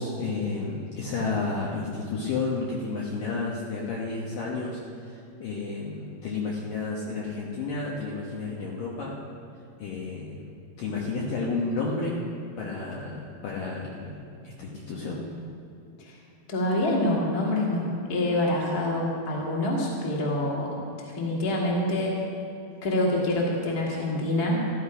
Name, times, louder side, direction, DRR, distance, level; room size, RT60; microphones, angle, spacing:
voice 1, 0.0-4.8 5.4-9.1 9.8-10.5 10.8-12.1 12.6-14.2 14.4-15.2, left 3 dB, 65° left, -4 dB, 2.4 m, -31 dB
voice 2, 16.5-22.2 22.8-24.6, left 1 dB, 30° left, -3 dB, 1.9 m, -26 dB
14.0 x 13.5 x 5.0 m, 2.5 s
omnidirectional pair, 5.2 m